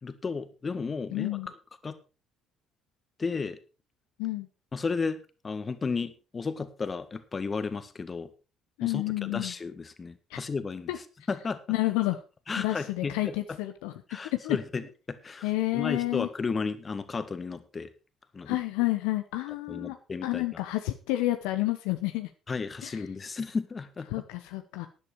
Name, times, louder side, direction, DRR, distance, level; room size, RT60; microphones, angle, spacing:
voice 1, 0.0-1.4 1.8-2.0 3.2-3.6 4.7-8.3 8.8-10.9 11.3-11.6 12.5-13.6 14.1-17.9 18.3-18.6 19.7-20.6 22.5-24.2, left 4 dB, 30° left, 11 dB, 1.8 m, -34 dB
voice 2, 1.1-1.5 4.2-4.5 8.8-9.5 10.3-10.4 10.9-11.0 11.7-12.2 12.6-13.9 14.3-14.6 15.4-16.3 18.5-20.0 20.2-22.3 22.8-23.0 24.1-24.9, left 18 dB, 70° left, 8 dB, 0.9 m, -29 dB
12.0 x 11.0 x 4.7 m, 0.33 s
hypercardioid pair, 50°, 0 cm